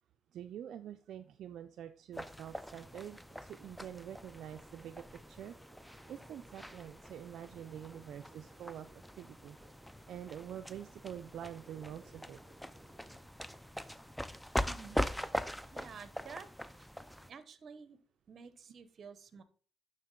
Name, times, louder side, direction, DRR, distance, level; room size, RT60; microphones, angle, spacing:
voice 1, 0.3-5.5 6.1-8.9 9.1-9.6 10.1-12.4, right 10 dB, 75° right, 7 dB, 0.4 m, -46 dB
sound 1, 2.1-17.3, equal, 5° left, 0.4 m, -42 dB
sound 2, 3.1-16.9, right 3 dB, 30° right, 1.2 m, -64 dB
voice 2, 14.7-15.0 15.7-16.5 17.3-18.0 18.3-19.4, right 6 dB, 50° right, 13 dB, 0.8 m, -50 dB
11.0 x 3.8 x 3.7 m, 0.43 s
cardioid pair, 90°, 0 cm